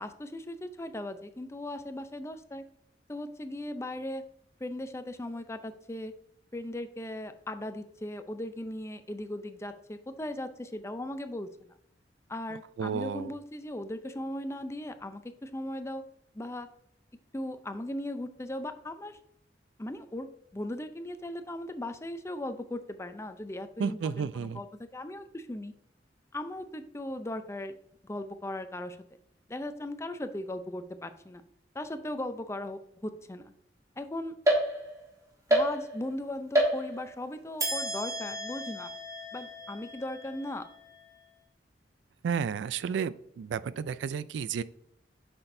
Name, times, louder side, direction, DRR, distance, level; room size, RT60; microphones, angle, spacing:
voice 1, 0.0-2.6 3.1-4.2 4.6-6.1 6.5-11.5 12.3-16.0 16.3-16.7 17.3-19.2 19.8-24.7 24.9-25.7 26.3-27.7 28.0-29.0 29.5-31.4 31.7-33.5 34.0-34.3 35.5-38.9 39.3-40.7, left 1 dB, 15° left, 9 dB, 0.5 m, -38 dB
voice 2, 12.8-13.3 23.8-24.6 42.2-44.6, right 6 dB, 80° right, 17 dB, 0.3 m, -32 dB
sound 1, 34.5-35.1 35.5-36.2 36.5-37.2 37.6-41.1, right 1 dB, 20° right, 1.3 m, -30 dB
7.7 x 5.9 x 2.6 m, 0.71 s
head